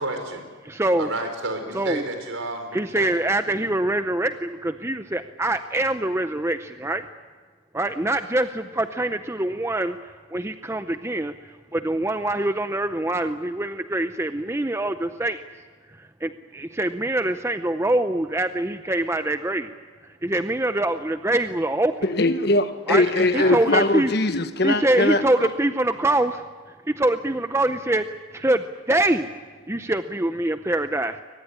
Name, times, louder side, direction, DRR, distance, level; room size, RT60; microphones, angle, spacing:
voice 1, 0.0-0.4 1.0-3.1 3.5-3.6 23.0-23.9, right 2 dB, 75° right, 6 dB, 4.8 m, -31 dB
voice 2, 0.7-1.1 1.7-2.1 2.7-7.1 7.7-10.0 10.3-11.3 11.7-15.4 16.0-19.7 20.2-21.9 22.9-23.1 23.3-24.1 24.6-26.4 26.9-29.3 29.7-31.2, right 1 dB, 15° right, 9 dB, 0.6 m, -24 dB
voice 3, 22.0-25.5, left 2 dB, 50° left, 9 dB, 1.3 m, -21 dB
23.0 x 19.5 x 9.9 m, 1.5 s
head